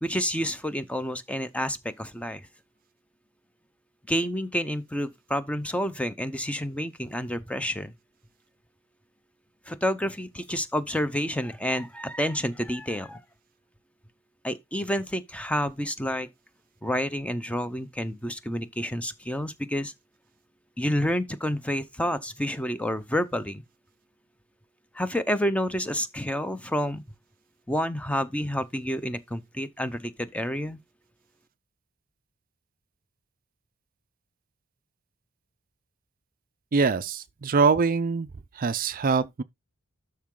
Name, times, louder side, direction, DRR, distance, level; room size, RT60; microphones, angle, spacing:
voice 1, 0.0-2.4 4.1-7.9 9.7-13.2 14.4-16.3 16.8-19.9 20.8-23.6 24.9-27.0 27.7-30.8, equal, 5° left, 0.7 m, -29 dB
voice 2, 36.7-38.3 38.5-39.4, right 5 dB, 40° right, 0.4 m, -23 dB
12.0 x 4.7 x 3.8 m
head